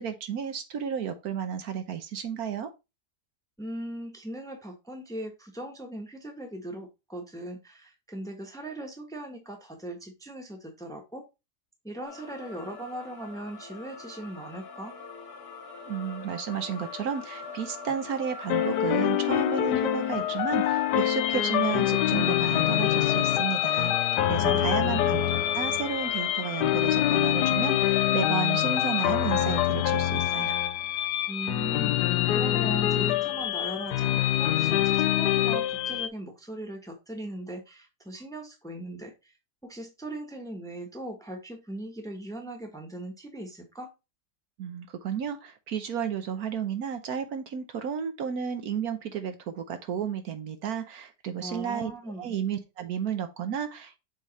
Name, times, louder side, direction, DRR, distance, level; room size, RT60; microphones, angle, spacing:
voice 1, 0.0-2.7 15.9-25.2 25.5-30.6 44.6-51.9 52.2-54.0, right 8 dB, 70° right, 1.2 m, -32 dB
voice 2, 3.6-11.2 11.8-15.0 24.4-25.1 31.3-39.3 39.6-43.9 51.4-52.4, right 1 dB, ahead, 1.1 m, -39 dB
sound 1, 12.0-29.7, left 5 dB, 65° left, 1.7 m, -41 dB
sound 2, 18.5-36.1, left 13 dB, 85° left, 1.2 m, -25 dB
7.3 x 3.4 x 4.1 m
omnidirectional pair, 1.7 m